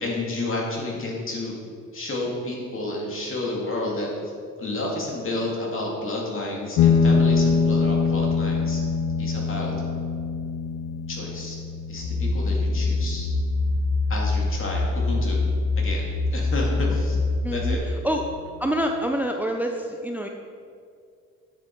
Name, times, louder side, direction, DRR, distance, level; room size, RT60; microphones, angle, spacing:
voice 1, 0.0-1.6 1.9-4.3 4.6-8.8 9.2-9.8 11.1-11.6 11.9-13.3 14.1-15.4 15.8-17.2 17.5-17.8, left 2 dB, 45° left, -2 dB, 2.5 m, -31 dB
sound 1, 6.8-15.8, left 5 dB, 85° left, 0.7 m, -24 dB
sound 2, 12.0-17.7, left 3 dB, 65° left, 1.0 m, -24 dB
voice 2, 17.4-18.2 18.6-20.3, right 1 dB, 5° right, 3 dB, 0.6 m, -27 dB
9.5 x 7.3 x 4.6 m, 2.3 s
cardioid pair, 90°, 30 cm